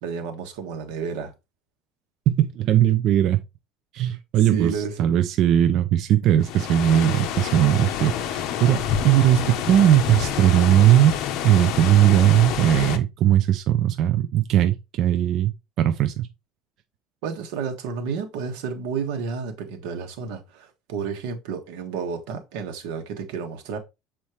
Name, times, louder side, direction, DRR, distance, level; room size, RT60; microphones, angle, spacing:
voice 1, 0.0-1.3 4.5-5.2 17.2-23.8, right 6 dB, 90° right, 1.5 m, -31 dB
voice 2, 2.3-3.4 3.9-4.7 5.0-11.1 11.4-15.5 15.8-16.3, right 11 dB, 40° right, 0.5 m, -19 dB
sound 1, 6.4-13.0, left 9 dB, 50° left, 0.8 m, -28 dB
7.2 x 4.3 x 3.1 m
cardioid pair, 180°, 0 cm